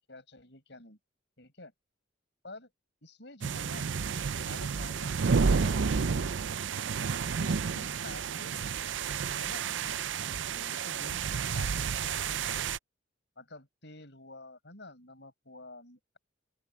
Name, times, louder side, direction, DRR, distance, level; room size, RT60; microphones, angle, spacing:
voice 1, 0.1-1.0 1.4-1.7 2.4-2.7 3.0-3.9 4.4-5.8 7.4-8.7 9.1-12.1 13.4-16.2, left 2 dB, 60° left, 6.7 m, -50 dB
sound 1, 3.4-12.8, right 5 dB, 70° right, 0.5 m, -31 dB
open air
head